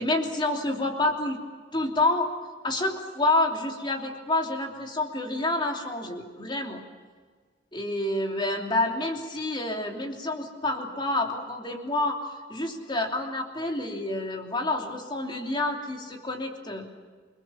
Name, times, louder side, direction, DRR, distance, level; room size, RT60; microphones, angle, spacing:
voice 1, 0.0-1.4 1.7-2.3 2.6-6.8 7.7-12.2 12.5-16.9, left 2 dB, 25° left, 2 dB, 3.0 m, -28 dB
28.5 x 21.0 x 7.1 m, 1.5 s
head